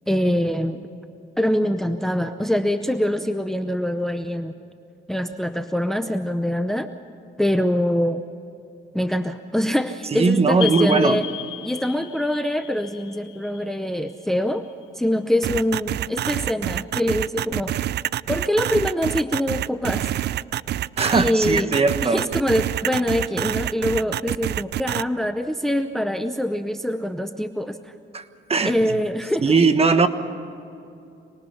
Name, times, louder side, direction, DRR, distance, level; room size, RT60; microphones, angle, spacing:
voice 1, 0.1-0.8 1.4-4.6 5.1-6.9 7.4-8.2 8.9-11.3 11.6-14.7 15.0-17.7 18.3-20.1 21.1-27.9 28.6-29.6, left 1 dB, ahead, 9 dB, 0.8 m, -24 dB
voice 2, 10.1-11.2 21.0-22.2 28.1-28.2 28.5-28.7 29.4-30.1, right 4 dB, 30° right, 7 dB, 1.3 m, -19 dB
sound 1, 10.6-15.0, left 12 dB, 85° left, 1.6 m, -35 dB
sound 2, 15.4-25.0, right 12 dB, 60° right, 0.4 m, -26 dB
26.5 x 20.0 x 5.6 m, 2.6 s
cardioid pair, 90°, 20 cm